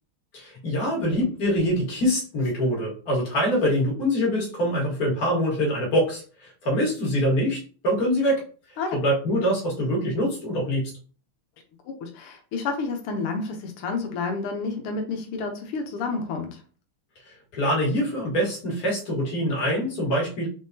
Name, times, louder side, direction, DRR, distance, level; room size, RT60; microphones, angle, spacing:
voice 1, 0.3-8.4 8.9-10.9 17.3-20.5, equal, 45° left, -3 dB, 2.0 m, -24 dB
voice 2, 11.8-16.6, left 4 dB, 90° left, 4 dB, 1.7 m, -30 dB
4.4 x 3.6 x 2.7 m, 0.38 s
omnidirectional pair, 2.4 m